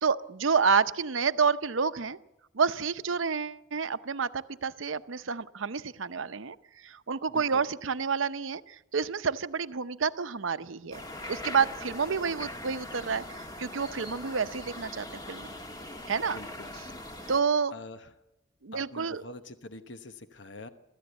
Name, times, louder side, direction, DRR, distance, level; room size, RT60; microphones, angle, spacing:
voice 1, 0.0-2.2 2.5-6.6 6.8-11.0 11.3-15.5 16.1-16.4 17.3-17.8 18.6-19.2, right 5 dB, 85° right, 12 dB, 0.8 m, -29 dB
voice 2, 7.3-7.6 16.3-16.7 17.7-18.1 18.7-20.7, left 2 dB, 65° left, 9 dB, 1.1 m, -45 dB
sound 1, 10.9-17.4, left 1 dB, 20° left, 1.5 m, -41 dB
25.5 x 14.0 x 8.2 m, 0.97 s
head